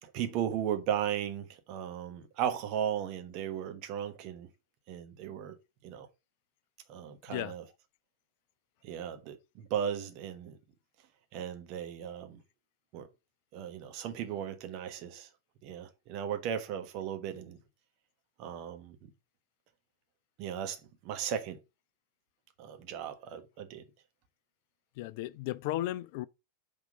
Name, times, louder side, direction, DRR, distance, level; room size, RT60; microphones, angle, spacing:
voice 1, 0.0-4.5 4.9-5.6 5.8-6.1 6.9-7.6 8.8-10.6 11.3-12.4 12.9-13.1 13.5-15.3 15.6-17.6 18.4-19.0 20.4-21.6 22.6-23.9, right 9 dB, 40° right, 1.2 m, -36 dB
voice 2, 25.0-26.3, left 15 dB, 50° left, 0.3 m, -35 dB
5.9 x 3.6 x 5.2 m
figure-of-eight pair, 90°, 0 cm